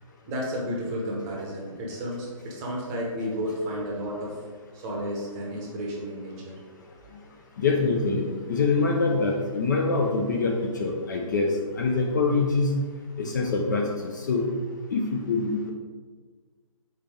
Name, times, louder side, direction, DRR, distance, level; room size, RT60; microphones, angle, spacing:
voice 1, 0.3-4.4 4.7-6.6, equal, 20° right, -2 dB, 0.8 m, -32 dB
voice 2, 7.6-12.7 13.2-13.9 14.1-14.6 14.9-15.7, left 3 dB, 35° left, 1 dB, 0.4 m, -25 dB
4.2 x 3.3 x 3.4 m, 1.5 s
figure-of-eight pair, 135°, 18 cm